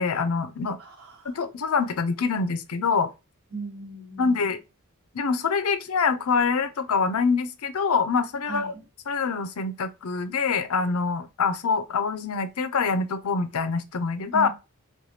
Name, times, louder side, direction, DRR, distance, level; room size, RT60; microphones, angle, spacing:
voice 1, 0.0-0.8 1.2-3.1 4.2-4.6 5.1-8.7 9.1-14.5, left 5 dB, 75° left, 0.5 m, -25 dB
voice 2, 0.8-1.3 3.5-4.5 8.4-8.8 14.3-14.5, right 3 dB, 75° right, 1.3 m, -38 dB
3.2 x 2.2 x 2.7 m
head